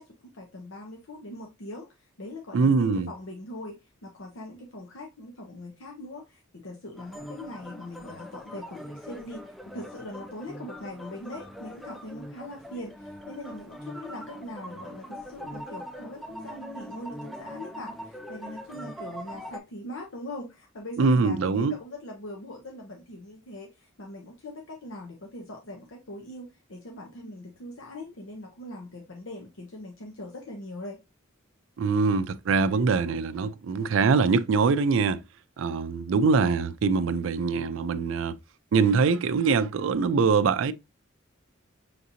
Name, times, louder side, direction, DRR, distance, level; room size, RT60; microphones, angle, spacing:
voice 1, 0.0-1.9 2.2-3.8 4.0-9.4 9.7-31.0, left 1 dB, 80° left, 0.8 m, -41 dB
voice 2, 2.5-3.1 21.0-21.7 31.8-35.2 35.6-38.4 38.7-40.7, right 4 dB, 75° right, 0.4 m, -23 dB
sound 1, 7.0-19.6, equal, ahead, 0.4 m, -42 dB
5.8 x 2.8 x 2.5 m
head